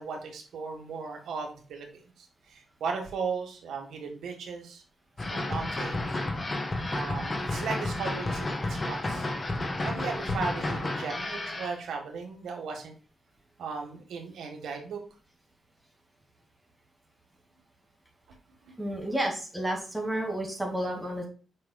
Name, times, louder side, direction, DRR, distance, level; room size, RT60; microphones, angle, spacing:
voice 1, 0.0-1.9 2.2-4.8 5.3-6.2 6.9-9.3 9.8-12.9 13.6-15.0 18.6-18.7, right 5 dB, 80° right, 2 dB, 1.7 m, -36 dB
sound 1, 5.2-11.7, left 2 dB, 30° left, 1.2 m, -31 dB
voice 2, 18.8-21.3, right 1 dB, 5° right, -1 dB, 2.5 m, -31 dB
7.5 x 5.5 x 2.4 m, 0.38 s
cardioid pair, 110°, 0 cm